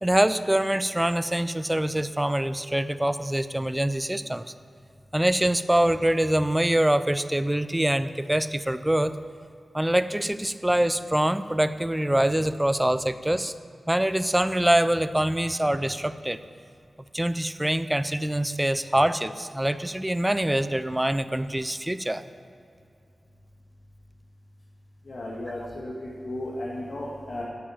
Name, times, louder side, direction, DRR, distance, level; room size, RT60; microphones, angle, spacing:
voice 1, 0.0-4.4 5.1-9.1 9.7-13.5 13.9-16.4 17.1-22.2, right 1 dB, 10° right, 12 dB, 0.4 m, -24 dB
voice 2, 25.1-25.9 26.2-27.4, left 1 dB, 60° left, -5 dB, 1.8 m, -34 dB
10.5 x 8.5 x 7.2 m, 2.4 s
wide cardioid pair, 80°, 0 cm